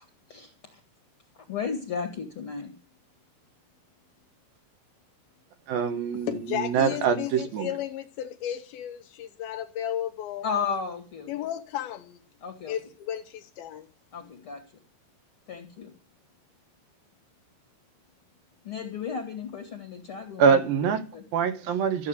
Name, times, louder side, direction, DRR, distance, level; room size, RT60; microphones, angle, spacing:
voice 1, 1.5-2.7 10.4-11.5 12.4-12.8 14.1-14.6 15.5-15.9 18.6-21.2, left 6 dB, 45° left, 2.0 m, -34 dB
voice 2, 5.7-7.7 20.4-21.0 21.3-22.1, right 6 dB, 70° right, 2.9 m, -24 dB
voice 3, 6.3-10.5 11.3-12.2 12.7-13.9 14.2-14.3, left 11 dB, 75° left, 2.6 m, -34 dB
14.5 x 7.2 x 8.1 m
omnidirectional pair, 4.7 m